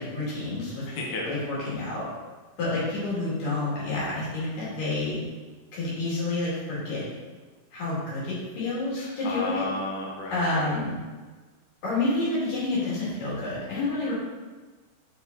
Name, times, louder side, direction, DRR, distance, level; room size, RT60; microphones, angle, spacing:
voice 1, 0.0-0.8 1.2-2.1 2.6-5.2 5.7-7.1 7.7-9.7 10.3-10.9 11.8-14.1, left 2 dB, 65° left, -8 dB, 3.9 m, -29 dB
voice 2, 0.9-1.3 9.2-10.8, left 2 dB, 90° left, -2 dB, 1.1 m, -32 dB
7.0 x 4.8 x 3.9 m, 1.3 s
omnidirectional pair, 4.3 m